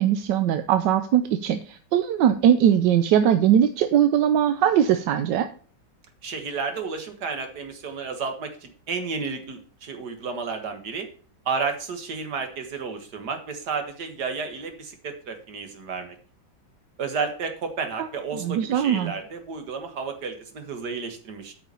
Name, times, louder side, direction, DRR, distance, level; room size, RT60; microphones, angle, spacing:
voice 1, 0.0-5.5 18.4-19.1, right 9 dB, 75° right, 10 dB, 1.2 m, -20 dB
voice 2, 6.2-11.1 11.5-16.2 17.0-21.5, right 5 dB, 60° right, 6 dB, 2.0 m, -32 dB
8.6 x 5.7 x 6.8 m, 0.43 s
omnidirectional pair, 2.1 m